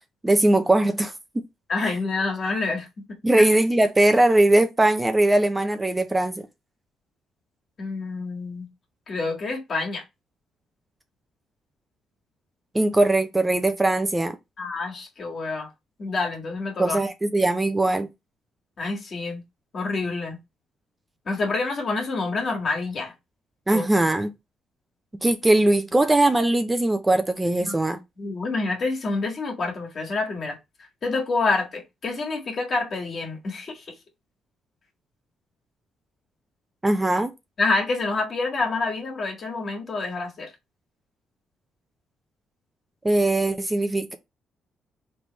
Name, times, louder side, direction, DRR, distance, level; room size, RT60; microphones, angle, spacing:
voice 1, 0.2-1.1 3.2-6.5 12.7-14.4 16.8-18.1 23.7-24.3 25.2-28.0 36.8-37.3 43.0-44.1, right 2 dB, 15° right, 0.6 m, -20 dB
voice 2, 1.7-2.9 3.3-3.5 7.8-8.7 9.1-10.0 14.6-15.7 16.0-17.0 18.8-19.4 19.7-20.4 21.3-23.1 23.7-23.9 27.6-27.7 28.2-30.6 31.0-33.8 37.6-40.5, left 3 dB, 50° left, 1.8 m, -27 dB
4.1 x 3.4 x 3.1 m
cardioid pair, 90°, 0 cm